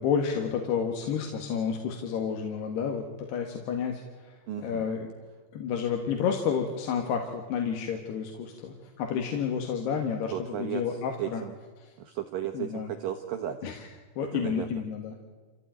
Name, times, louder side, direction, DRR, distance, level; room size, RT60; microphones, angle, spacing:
voice 1, 0.0-4.4 4.6-5.1 5.5-10.3 10.6-11.4 11.8-11.9 12.5-12.9 13.6-13.8 14.2-15.2, left 7 dB, 70° left, 2 dB, 3.7 m, -30 dB
voice 2, 4.5-4.9 10.3-11.5 12.0-13.6 14.3-14.7, right 11 dB, 70° right, 5 dB, 2.2 m, -35 dB
28.0 x 15.5 x 9.4 m, 1.4 s
omnidirectional pair, 5.2 m